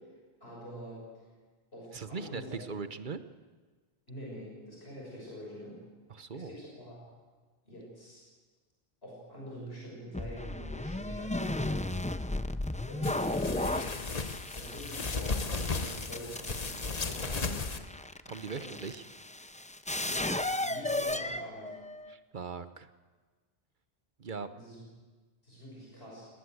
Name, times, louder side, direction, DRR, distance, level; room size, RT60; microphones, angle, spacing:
voice 1, 0.4-1.0 1.7-2.6 4.1-5.8 6.3-7.0 7.6-8.2 9.0-11.9 12.8-14.0 14.5-17.6 18.6-18.7 20.0-21.8 24.5-24.8 25.4-26.2, equal, 75° left, -4 dB, 6.7 m, -45 dB
voice 2, 1.9-3.2 6.1-6.6 18.3-19.0 22.1-22.9 24.2-24.5, right 5 dB, 50° right, 11 dB, 1.1 m, -40 dB
sound 1, 10.1-22.1, left 1 dB, 10° left, 0.4 m, -35 dB
sound 2, 13.0-17.8, left 4 dB, 40° left, 1.2 m, -35 dB
20.0 x 18.5 x 8.0 m, 1.4 s
omnidirectional pair, 1.1 m